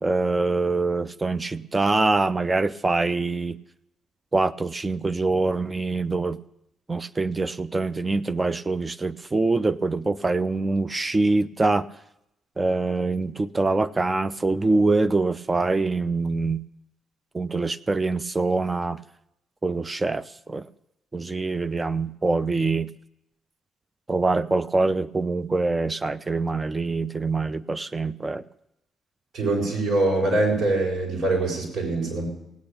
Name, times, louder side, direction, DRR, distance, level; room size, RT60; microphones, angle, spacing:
voice 1, 0.0-3.6 4.3-6.4 6.9-11.9 12.6-16.6 17.3-19.0 19.6-20.2 20.5-20.7 21.1-22.9 24.1-28.4, right 3 dB, 30° right, 14 dB, 0.6 m, -24 dB
voice 2, 29.3-32.3, right 2 dB, 65° right, -2 dB, 6.3 m, -23 dB
17.0 x 8.7 x 6.8 m, 0.84 s
hypercardioid pair, 50°, 0 cm